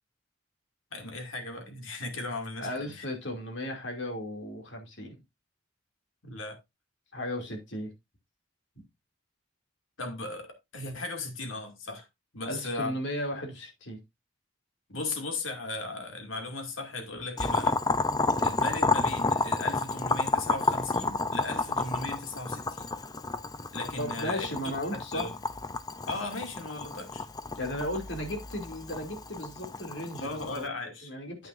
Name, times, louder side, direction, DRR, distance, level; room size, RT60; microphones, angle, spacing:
voice 1, 0.9-2.9 6.2-6.6 10.0-12.1 12.3-12.9 14.9-17.8 18.4-22.9 23.7-24.5 24.9-25.4 26.1-27.3 30.2-31.1, left 2 dB, 85° left, 2.3 m, -37 dB
voice 2, 2.6-5.2 7.1-7.9 12.4-14.0 24.0-25.3 27.5-30.6 31.0-31.5, left 1 dB, 65° left, 2.6 m, -35 dB
Boiling, 17.4-30.6, left 3 dB, 20° left, 0.5 m, -30 dB
9.2 x 9.0 x 2.6 m
head